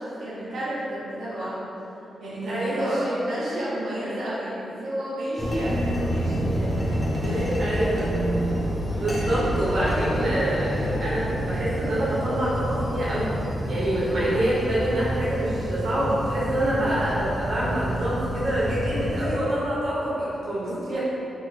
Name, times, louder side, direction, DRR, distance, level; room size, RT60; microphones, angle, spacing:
voice 1, 0.0-1.6 2.2-6.7 7.1-8.0 20.9-21.0, equal, 85° right, -10 dB, 0.8 m, -31 dB
voice 2, 2.4-3.0 7.6-8.1 9.0-13.4 13.7-21.0, right 1 dB, 55° right, -9 dB, 1.0 m, -26 dB
sound 1, 5.4-19.3, equal, 10° left, 0.7 m, -28 dB
2.9 x 2.4 x 4.1 m, 3.0 s
wide cardioid pair, 155°, 0 cm